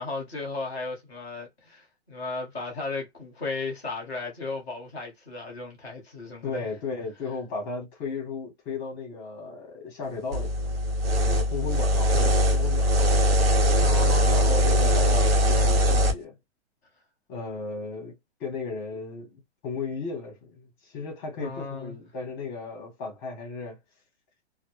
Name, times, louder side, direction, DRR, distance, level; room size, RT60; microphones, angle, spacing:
voice 1, 0.0-6.7 13.7-14.4 21.4-21.9, left 3 dB, 5° right, 0.3 m, -35 dB
voice 2, 6.4-10.8 11.1-13.1 14.0-16.4 17.3-23.8, left 4 dB, 20° left, 0.8 m, -35 dB
sound 1, 10.3-16.1, equal, 60° right, 1.0 m, -21 dB
2.1 x 2.0 x 3.0 m
hypercardioid pair, 170°, 34 cm